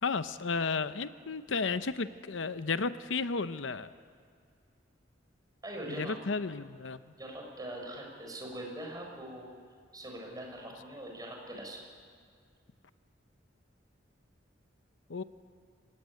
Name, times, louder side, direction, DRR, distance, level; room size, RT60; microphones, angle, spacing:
voice 1, 0.0-3.9 6.0-7.0 15.1-15.2, left 4 dB, 75° left, 12 dB, 0.7 m, -33 dB
voice 2, 5.6-6.1 7.2-9.5 9.9-11.8, right 1 dB, 20° right, 0 dB, 5.7 m, -42 dB
25.5 x 17.5 x 9.9 m, 2.1 s
head